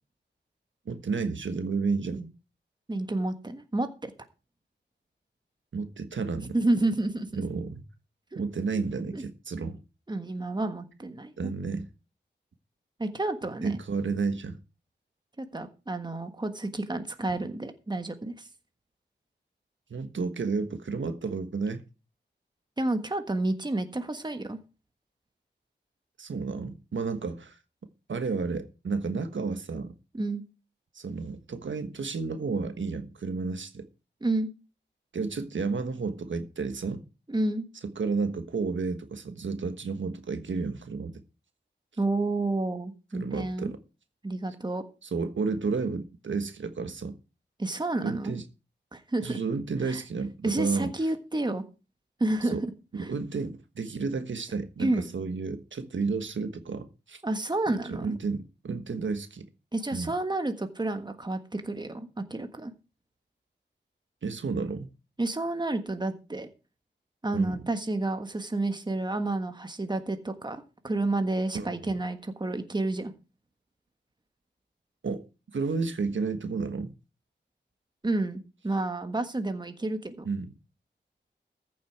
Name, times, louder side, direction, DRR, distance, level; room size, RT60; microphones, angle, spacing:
voice 1, 0.9-2.2 5.7-6.6 7.3-7.8 8.3-9.8 11.4-11.9 13.6-14.6 19.9-21.8 26.2-27.5 28.1-29.9 30.9-33.9 35.1-37.0 37.8-41.1 43.1-43.8 45.0-47.2 48.0-48.4 49.2-50.9 52.5-52.6 52.9-57.2 57.9-59.4 59.9-60.1 64.2-64.9 67.3-67.6 71.5-71.7 75.0-75.3 75.5-76.9 80.2-80.5, right 4 dB, 85° right, 1.4 m, -31 dB
voice 2, 2.9-4.1 6.5-7.4 8.3-8.4 9.1-9.2 10.1-11.5 13.0-13.8 15.4-18.5 22.8-24.6 30.1-30.4 34.2-34.5 37.3-37.7 42.0-43.7 44.2-44.8 47.6-48.3 48.9-49.4 49.8-50.0 50.4-51.6 52.2-52.7 53.0-53.1 54.8-55.0 57.2-58.2 59.7-62.7 65.2-66.5 67.2-73.1 78.0-80.3, right 2 dB, 25° right, 1.5 m, -30 dB
14.5 x 7.4 x 4.7 m
wide cardioid pair, 105°, 19 cm